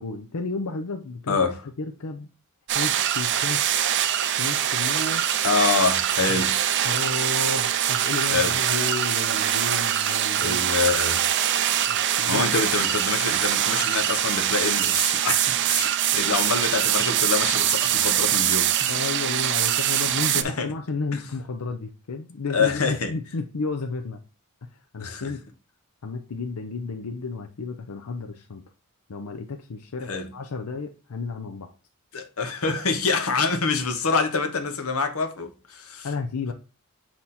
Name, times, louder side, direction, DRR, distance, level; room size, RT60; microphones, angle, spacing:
voice 1, 0.0-1.4 1.8-2.3 2.7-3.7 4.4-5.2 6.3-6.5 6.8-10.6 11.9-12.5 18.9-24.2 24.9-25.4 26.0-28.6 29.1-31.7 36.0-36.5, left 4 dB, 90° left, 0.6 m, -32 dB
voice 2, 1.3-1.6 5.4-6.6 8.3-8.6 10.4-11.2 12.2-18.9 20.3-20.7 21.1-21.2 22.5-23.1 25.0-25.3 30.1-30.3 32.1-36.1, left 4 dB, 70° left, 0.9 m, -26 dB
sound 1, 2.7-20.4, right 11 dB, 50° right, 0.5 m, -23 dB
7.6 x 2.9 x 4.1 m
head